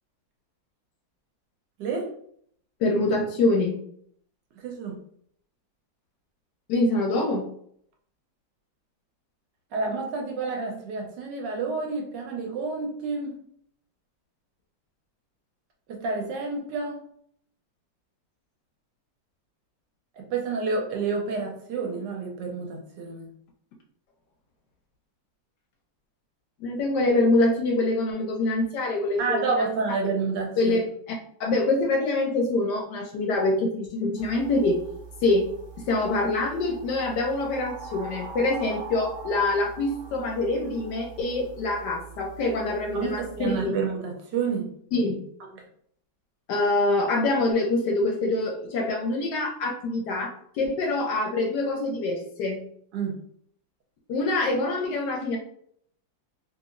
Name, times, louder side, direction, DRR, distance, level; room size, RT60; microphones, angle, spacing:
voice 1, 1.8-2.1 4.6-5.0 9.7-13.4 15.9-17.0 20.2-23.3 29.2-30.8 42.9-44.7 45.5-45.6 52.9-53.2, right 4 dB, 75° right, 1 dB, 1.2 m, -29 dB
voice 2, 2.8-3.8 6.7-7.5 26.6-29.4 30.6-30.8 31.4-34.8 35.2-35.4 35.8-43.8 44.9-45.2 46.5-52.6 54.1-55.4, left 2 dB, 70° left, 1 dB, 1.0 m, -25 dB
sound 1, 34.2-43.6, right 5 dB, 55° right, 0.9 m, -42 dB
2.9 x 2.8 x 2.4 m, 0.64 s
omnidirectional pair, 2.1 m